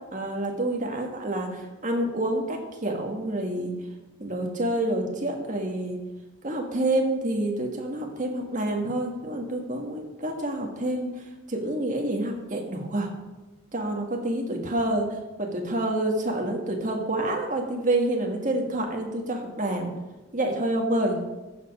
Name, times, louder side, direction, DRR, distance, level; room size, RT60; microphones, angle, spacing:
voice 1, 0.1-3.7 4.2-6.0 6.4-11.1 11.5-13.1 13.7-15.1 15.4-19.9 20.3-21.2, right 1 dB, 40° right, 2 dB, 1.6 m, -28 dB
14.5 x 5.1 x 5.3 m, 1.1 s
head